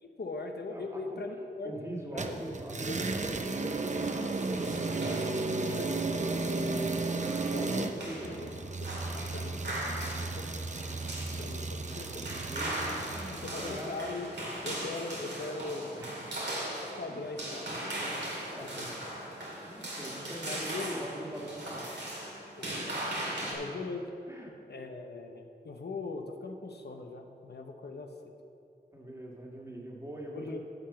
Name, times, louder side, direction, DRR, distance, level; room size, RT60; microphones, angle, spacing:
voice 1, 0.0-1.7 2.1-2.4 2.7-3.0 3.5-3.7 7.5-8.5 8.8-9.8 10.2-10.6 11.4-12.2 13.3-14.3 14.6-16.0 16.8-17.7 18.6-19.1 20.4-21.1 22.6-22.8 23.5-24.1 24.7-28.1 30.3-30.6, left 3 dB, 70° left, 4 dB, 0.7 m, -40 dB
voice 2, 0.7-1.2 1.6-7.0 7.4-8.4 11.0-11.5 12.1-12.7 13.1-13.9 15.9-16.1 17.1-17.2 18.5-18.9 19.6-21.9 23.4-23.5 24.3-24.5 28.9-30.6, right 1 dB, 15° right, -2 dB, 1.7 m, -43 dB
sound 1, 2.2-13.9, right 3 dB, 45° right, 0.6 m, -34 dB
sound 2, 4.0-23.5, right 1 dB, 85° right, 2.1 m, -39 dB
11.0 x 4.8 x 7.1 m, 2.7 s
wide cardioid pair, 60°, 17 cm